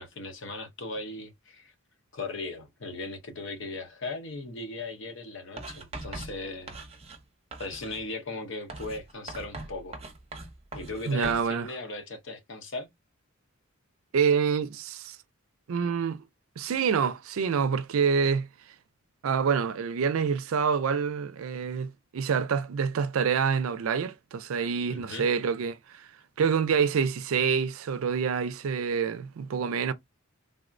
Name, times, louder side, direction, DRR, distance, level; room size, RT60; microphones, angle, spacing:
voice 1, 0.0-1.7 2.1-6.8 7.6-10.0 10.7-12.9 24.9-25.3, left 2 dB, 60° left, 0.7 m, -38 dB
Writing, 5.6-7.2 7.5-8.1 8.7-11.5, right 2 dB, 30° right, 0.6 m, -41 dB
voice 2, 11.1-11.7 14.1-15.2 15.7-16.2 16.6-18.5 19.2-26.1 26.4-29.9, right 6 dB, 70° right, 0.4 m, -27 dB
3.5 x 2.0 x 2.4 m
head